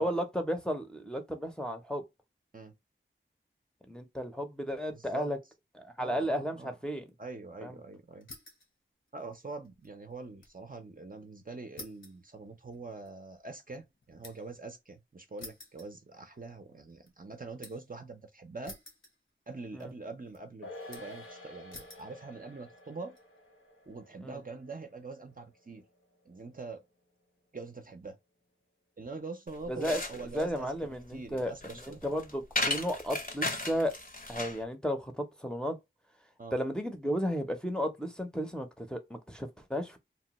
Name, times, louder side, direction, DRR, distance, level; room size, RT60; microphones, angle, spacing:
voice 1, 0.0-2.0 3.9-5.4 5.8-7.0 7.6-7.8 19.7-19.9 24.2-24.4 29.7-30.0 30.3-31.5 31.9-33.9 34.3-35.8 36.5-40.0, equal, 5° left, 0.6 m, -33 dB
voice 2, 4.9-5.3 6.0-6.7 7.2-8.3 9.1-18.8 19.5-23.2 23.9-25.8 26.3-26.8 27.5-28.2 29.0-30.7 31.1-32.0 36.4-36.6, right 3 dB, 40° right, 0.5 m, -44 dB
sound 1, 8.2-8.7 9.1-10.6 10.9-11.0 11.8-14.6 15.4-16.5 16.9-17.9 18.6-19.5 19.8-20.4 20.9-21.3 21.7-22.1 22.8-23.2, left 2 dB, 65° left, 1.0 m, -51 dB
sound 2, 20.6-27.3 27.6-27.7, left 1 dB, 90° left, 0.8 m, -51 dB
sound 3, 29.5-34.6, left 2 dB, 45° left, 0.7 m, -36 dB
3.0 x 2.1 x 2.9 m
wide cardioid pair, 45°, 21 cm